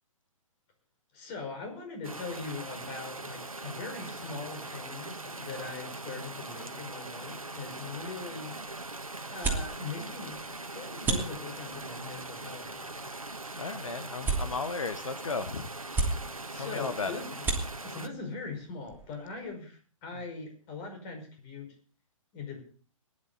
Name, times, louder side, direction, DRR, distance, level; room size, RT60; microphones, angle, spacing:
voice 1, 1.1-8.5 9.3-13.1 16.5-17.3 17.8-21.7 22.3-22.6, left 4 dB, 30° left, 4 dB, 5.5 m, -41 dB
sound 1, 2.0-18.1, right 2 dB, 80° right, 1.4 m, -41 dB
sound 2, 8.0-19.5, right 3 dB, 10° right, 2.9 m, -37 dB
voice 2, 13.5-15.7 16.5-17.2 20.1-20.2, left 4 dB, 70° left, 10 dB, 1.2 m, -35 dB
21.5 x 11.0 x 4.0 m, 0.39 s
figure-of-eight pair, 125°, 18 cm